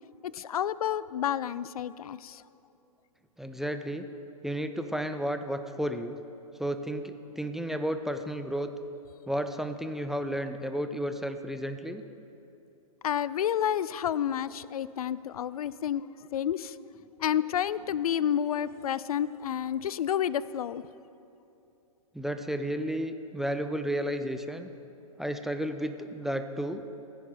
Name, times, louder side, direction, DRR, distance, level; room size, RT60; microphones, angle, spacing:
voice 1, 0.2-2.4 13.0-16.1 16.3-16.8 17.2-20.8, left 10 dB, 80° left, 18 dB, 0.4 m, -30 dB
voice 2, 3.4-4.1 4.4-6.2 6.6-8.7 9.3-12.0 22.1-24.7 25.2-26.8, equal, ahead, 8 dB, 0.4 m, -32 dB
17.0 x 9.9 x 3.8 m, 2.8 s
hypercardioid pair, 120°, 19 cm